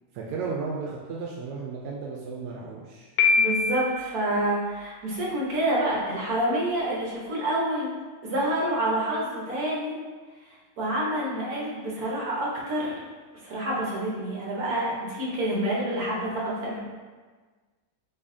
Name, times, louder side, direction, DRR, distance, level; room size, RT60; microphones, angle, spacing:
voice 1, 0.1-3.1, right 4 dB, 85° right, -3 dB, 1.2 m, -34 dB
Piano, 3.2-4.1, left 4 dB, 70° left, 1.2 m, -23 dB
voice 2, 3.4-7.9 8.2-9.9 10.8-12.9 13.4-16.8, right 1 dB, 70° right, -5 dB, 1.5 m, -28 dB
6.5 x 2.7 x 2.6 m, 1.4 s
omnidirectional pair, 1.7 m